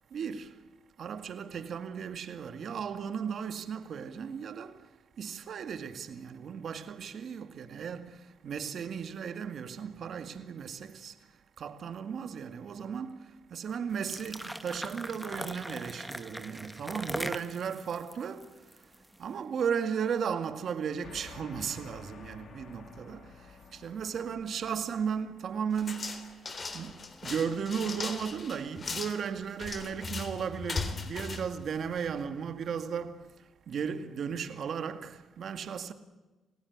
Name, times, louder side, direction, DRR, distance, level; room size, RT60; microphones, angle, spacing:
voice 1, 0.1-0.7 1.0-18.9 19.2-35.9, right 7 dB, 60° right, 2.1 m, -36 dB
Pouring tea, 13.9-19.2, equal, ahead, 1.9 m, -40 dB
sound 1, 21.0-26.8, left 5 dB, 55° left, 3.8 m, -52 dB
sound 2, 25.8-32.3, left 4 dB, 35° left, 3.5 m, -39 dB
28.5 x 16.5 x 9.6 m
cardioid pair, 90°, 0 cm